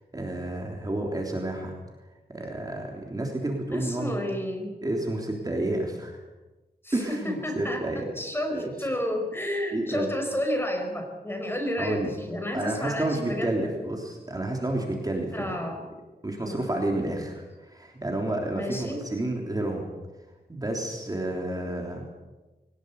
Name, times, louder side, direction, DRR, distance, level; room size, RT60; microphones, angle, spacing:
voice 1, 0.1-1.7 2.3-4.1 4.8-6.2 6.9-8.1 8.5-8.7 9.7-10.1 11.8-12.2 12.5-15.5 16.2-19.9 20.5-22.0, right 1 dB, 20° right, 1 dB, 3.4 m, -30 dB
voice 2, 3.7-4.7 6.8-13.7 15.3-15.9 16.4-16.6 18.5-19.0, left 1 dB, 15° left, 3 dB, 5.3 m, -31 dB
22.0 x 19.0 x 8.2 m, 1.2 s
wide cardioid pair, 125°, 17 cm